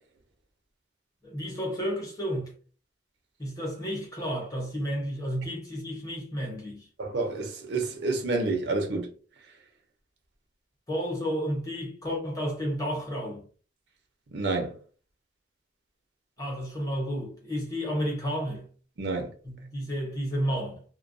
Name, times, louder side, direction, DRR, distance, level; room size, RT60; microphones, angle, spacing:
voice 1, 1.2-2.5 3.4-6.9 10.9-13.5 16.4-18.7 19.4-20.8, equal, 20° left, 0.8 m, -31 dB
voice 2, 7.0-9.1 14.3-14.8 19.0-19.3, right 3 dB, 75° right, 0.6 m, -29 dB
2.2 x 2.2 x 2.6 m
head